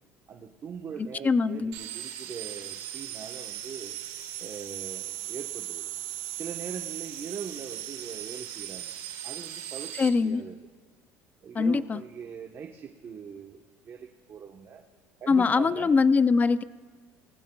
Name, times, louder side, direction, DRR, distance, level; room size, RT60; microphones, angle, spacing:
voice 1, 0.3-4.0 4.4-5.9 6.3-8.9 9.2-9.9 10.2-10.6 11.4-13.6 13.8-14.8 15.2-15.9, right 7 dB, 40° right, 3 dB, 1.1 m, -41 dB
voice 2, 1.2-1.7 10.0-10.4 11.5-12.0 15.3-16.6, left 4 dB, 25° left, 14 dB, 0.5 m, -22 dB
sound 1, 1.7-10.1, right 12 dB, 85° right, 1.9 m, -38 dB
28.5 x 19.5 x 2.3 m, 1.4 s
supercardioid pair, 100°, 7 cm